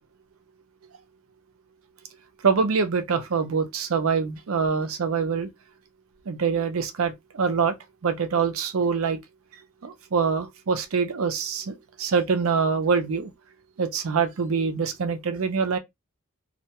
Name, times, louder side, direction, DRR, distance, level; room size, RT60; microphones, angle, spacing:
voice 1, 2.4-5.5 6.3-7.8 8.0-9.2 9.8-13.3 13.8-15.8, right 5 dB, 70° right, 0.5 m, -25 dB
2.3 x 2.2 x 2.9 m
head